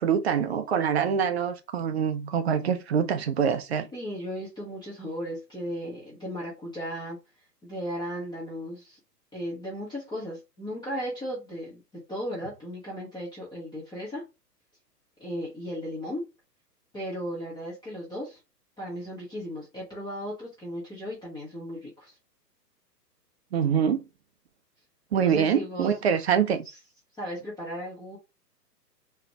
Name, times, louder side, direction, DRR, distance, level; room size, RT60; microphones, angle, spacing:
voice 1, 0.0-3.9 23.5-24.0 25.1-26.6, right 7 dB, 40° right, 0.6 m, -25 dB
voice 2, 3.9-7.2 7.6-9.0 9.3-11.8 12.1-14.2 15.2-16.2 16.9-18.4 18.8-22.2 25.1-25.9 26.6-26.8 27.2-28.2, equal, 10° left, 1.2 m, -36 dB
3.7 x 3.1 x 3.5 m
figure-of-eight pair, 115°, 50 cm